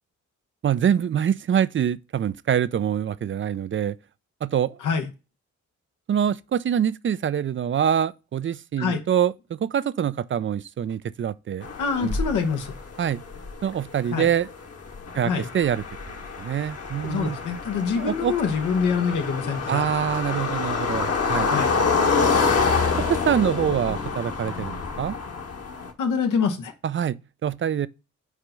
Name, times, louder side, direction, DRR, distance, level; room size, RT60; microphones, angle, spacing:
voice 1, 0.6-4.0 4.4-4.8 6.1-11.7 12.0-12.1 13.0-13.2 13.6-14.5 15.1-15.8 16.4-17.4 18.0-18.3 19.7-21.5 23.1-25.2 26.8-27.9, right 9 dB, 40° right, 0.4 m, -25 dB
sound 1, 11.6-25.9, left 4 dB, 55° left, 1.3 m, -27 dB
voice 2, 11.8-12.7 14.1-14.3 15.2-15.5 17.0-19.9 21.5-21.7 26.0-26.7, left 5 dB, 90° left, 1.2 m, -25 dB
4.8 x 4.4 x 5.2 m
cardioid pair, 65°, 30 cm